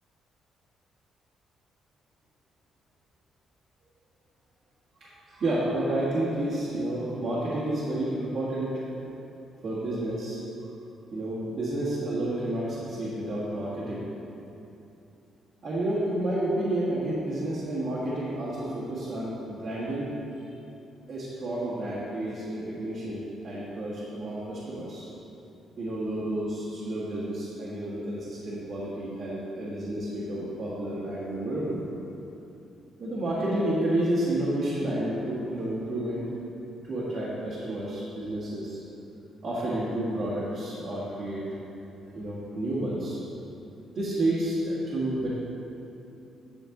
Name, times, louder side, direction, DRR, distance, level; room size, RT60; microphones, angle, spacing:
voice 1, 5.0-8.8 9.6-10.4 11.1-14.1 15.6-20.1 20.4-20.5 21.1-25.1 25.8-31.8 33.0-36.2 36.8-38.8 39.4-41.4 42.1-43.2 43.9-45.3, right 1 dB, 60° right, -11 dB, 1.9 m, -30 dB
8.7 x 6.4 x 3.9 m, 2.9 s
cardioid pair, 90°, 0 cm